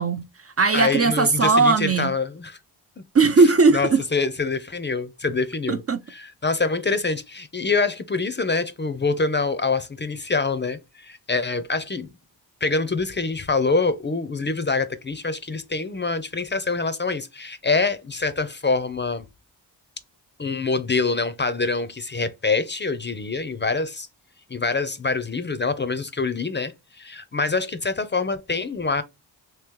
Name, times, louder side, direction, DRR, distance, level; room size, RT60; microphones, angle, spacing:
voice 1, 0.0-2.1 3.1-4.0 5.7-6.0, right 4 dB, 35° right, 0.5 m, -18 dB
voice 2, 0.7-2.6 3.7-5.8 6.1-12.1 12.6-19.2 20.4-24.1 24.5-29.0, left 4 dB, 25° left, 0.6 m, -25 dB
3.0 x 2.9 x 3.6 m
cardioid pair, 60°, 45 cm